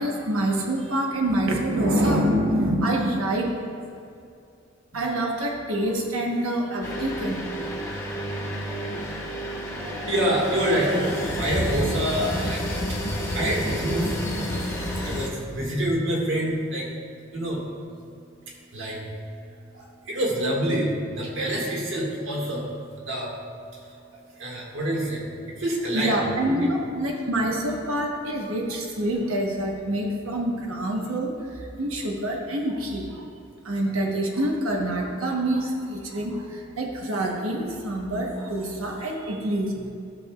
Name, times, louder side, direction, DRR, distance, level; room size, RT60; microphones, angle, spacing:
voice 1, 0.0-3.6 4.9-7.4 25.9-33.2 33.6-39.9, right 1 dB, 90° right, 0 dB, 1.1 m, -26 dB
sound 1, 6.8-15.3, equal, 15° left, 1.2 m, -30 dB
voice 2, 10.1-16.9 17.3-17.7 18.4-22.7 22.9-23.4 23.7-26.1 26.5-26.7, right 1 dB, 65° right, -3 dB, 1.8 m, -27 dB
14.0 x 6.4 x 2.3 m, 2.5 s
head